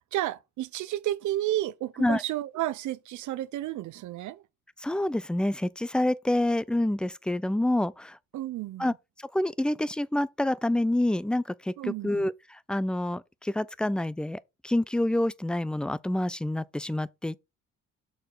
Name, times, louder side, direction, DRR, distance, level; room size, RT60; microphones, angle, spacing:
voice 1, 0.1-4.4 8.3-8.9 11.8-12.3, right 14 dB, 80° right, 0.6 m, -32 dB
voice 2, 4.8-8.2 8.8-8.9 9.2-17.4, left 1 dB, 5° left, 0.4 m, -27 dB
6.4 x 4.9 x 3.8 m
cardioid pair, 90°, 30 cm